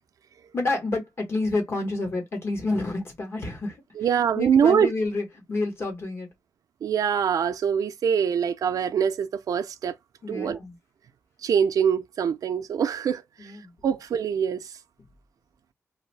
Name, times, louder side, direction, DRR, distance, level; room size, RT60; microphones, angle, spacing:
voice 1, 0.5-3.8 4.3-6.3 10.2-10.7 13.4-13.7, left 2 dB, 45° left, 1.2 m, -29 dB
voice 2, 4.0-4.9 6.8-9.9 10.3-10.6 11.4-13.5 13.8-14.8, right 7 dB, 90° right, 0.4 m, -24 dB
2.6 x 2.4 x 3.2 m
wide cardioid pair, 170°, 6 cm